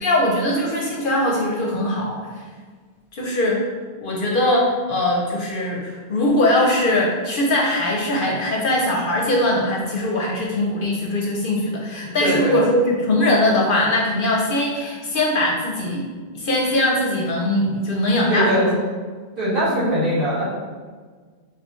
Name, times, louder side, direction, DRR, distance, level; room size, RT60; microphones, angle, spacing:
voice 1, 0.0-2.3 3.1-3.6 4.0-16.1 16.3-18.6, left 1 dB, 60° left, -2 dB, 0.7 m, -21 dB
voice 2, 12.0-12.6 18.3-18.8 19.4-20.4, equal, 55° right, -9 dB, 1.9 m, -21 dB
5.3 x 2.3 x 3.0 m, 1.5 s
omnidirectional pair, 1.1 m